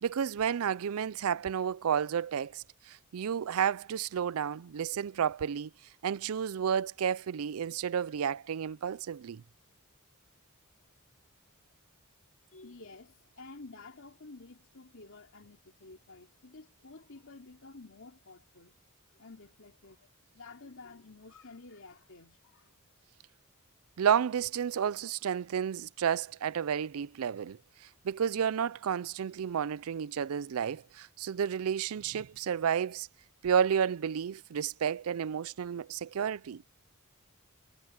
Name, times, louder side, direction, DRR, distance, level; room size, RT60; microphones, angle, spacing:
voice 1, 0.0-5.7 6.0-9.4 24.0-27.6 28.0-33.1 33.4-36.6, right 8 dB, 75° right, 0.4 m, -31 dB
voice 2, 12.5-18.8 19.1-22.7, left 3 dB, 65° left, 2.9 m, -51 dB
head